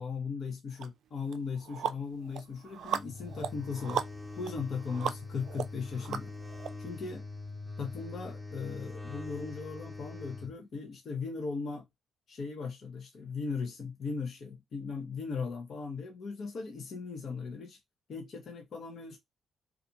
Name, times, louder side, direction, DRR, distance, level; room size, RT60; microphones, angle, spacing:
voice 1, 0.0-4.0 4.4-6.3 6.8-7.3 7.8-11.9 12.3-17.8 18.1-19.2, left 5 dB, 60° left, 0.7 m, -38 dB
sound 1, 0.8-0.9 1.3-6.7, right 8 dB, 70° right, 0.4 m, -37 dB
sound 2, 2.9-10.5, left 3 dB, 10° left, 0.9 m, -43 dB
2.5 x 2.4 x 2.7 m
cardioid pair, 70°, 0 cm